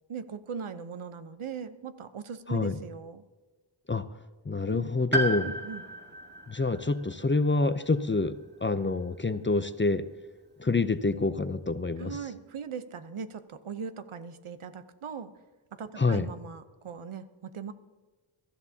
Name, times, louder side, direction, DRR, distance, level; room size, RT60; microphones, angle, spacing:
voice 1, 0.1-3.2 4.7-4.9 5.4-5.8 12.0-15.3 15.7-17.7, right 6 dB, 75° right, 12 dB, 0.9 m, -39 dB
voice 2, 4.5-5.5 6.5-10.0 10.6-12.2 16.0-16.3, left 3 dB, 25° left, 12 dB, 0.5 m, -27 dB
Piano, 5.1-9.0 9.3-9.4 10.5-10.6, right 1 dB, 20° right, 1.7 m, -35 dB
22.5 x 13.5 x 2.8 m, 1.3 s
wide cardioid pair, 85°, 49 cm